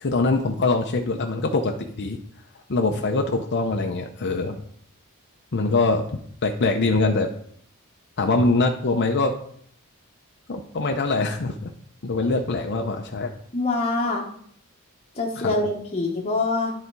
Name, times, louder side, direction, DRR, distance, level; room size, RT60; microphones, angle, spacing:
voice 1, 0.0-2.2 2.7-4.6 5.5-6.1 6.4-7.3 8.2-9.3 10.5-11.7 12.0-13.3 15.4-15.6, left 3 dB, 50° left, 3 dB, 0.7 m, -23 dB
voice 2, 13.5-14.3 15.2-16.7, left 3 dB, 30° left, -3 dB, 1.0 m, -24 dB
10.5 x 4.2 x 4.7 m, 0.62 s
head